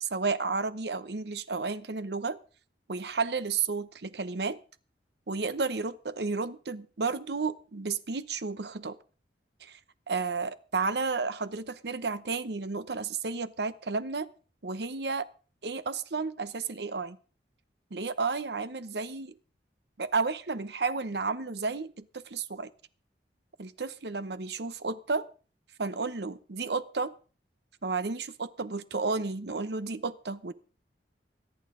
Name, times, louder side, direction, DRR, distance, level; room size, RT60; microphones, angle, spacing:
voice 1, 0.0-2.4 2.9-4.6 5.3-9.0 9.6-9.8 10.1-14.3 14.6-15.2 15.6-17.2 17.9-19.3 20.0-22.7 23.6-25.3 25.8-27.1 27.8-30.5, right 4 dB, 70° right, 14 dB, 0.8 m, -32 dB
25.0 x 8.9 x 3.8 m, 0.38 s
head